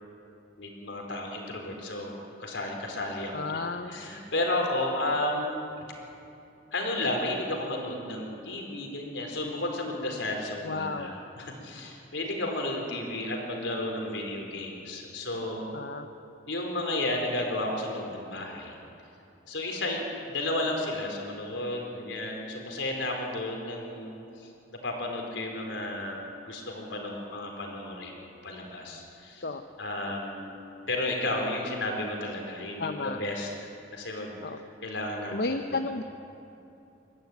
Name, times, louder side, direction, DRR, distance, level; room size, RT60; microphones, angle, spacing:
voice 1, 0.6-5.6 6.7-15.7 16.5-18.8 19.5-24.5 24.8-29.4 29.8-30.6 30.9-33.7 33.9-34.3 34.8-35.8, left 1 dB, 75° left, 1 dB, 4.3 m, -33 dB
voice 2, 3.3-4.0 10.6-11.1 15.7-16.1 29.4-29.6 32.8-33.2 34.4-34.6 35.3-36.0, left 3 dB, 55° left, 6 dB, 0.8 m, -32 dB
23.0 x 14.5 x 9.4 m, 2.8 s
head